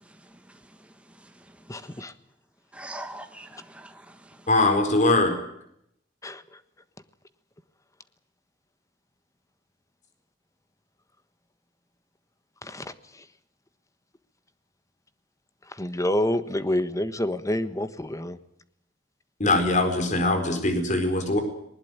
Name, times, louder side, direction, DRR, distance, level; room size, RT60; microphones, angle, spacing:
voice 1, 0.0-2.0 2.7-4.5, right 1 dB, 5° right, 1.3 m, -45 dB
voice 2, 1.7-2.1 6.2-6.6 12.6-13.3 15.7-18.4, left 1 dB, 20° left, 1.4 m, -28 dB
voice 3, 4.5-5.3 19.4-21.4, left 2 dB, 45° left, 4.4 m, -22 dB
20.5 x 20.0 x 9.1 m
head